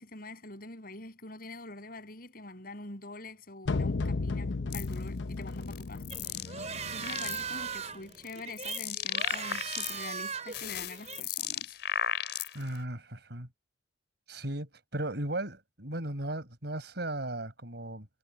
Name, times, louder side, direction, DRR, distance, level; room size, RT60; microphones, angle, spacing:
voice 1, 0.0-6.0 6.3-6.4 6.9-11.8, left 2 dB, 55° left, 8.0 m, -45 dB
sound 1, 3.7-7.7, left 3 dB, 85° left, 0.7 m, -34 dB
sound 2, 4.7-4.9 5.6-6.5 6.9-7.6 8.1-10.2 10.5-12.8, left 9 dB, 70° left, 5.3 m, -35 dB
sound 3, 6.1-11.2, right 6 dB, 40° right, 4.8 m, -39 dB
voice 2, 12.5-13.5 14.3-18.1, right 1 dB, 65° right, 5.6 m, -36 dB
head